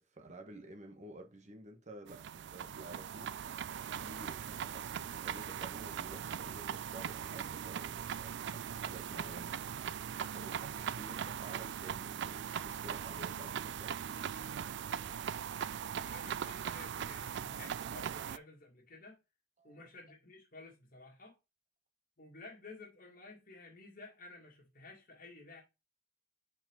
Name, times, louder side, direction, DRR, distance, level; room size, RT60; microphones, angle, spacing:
voice 1, 0.0-3.3 3.9-9.8 10.3-14.2 19.6-19.9, right 1 dB, 40° right, 1.3 m, -52 dB
sound 1, 2.1-18.4, right 8 dB, 65° right, 0.3 m, -40 dB
voice 2, 16.0-19.2 19.6-21.4 22.2-25.6, left 3 dB, 50° left, 1.9 m, -53 dB
5.4 x 4.7 x 4.6 m
head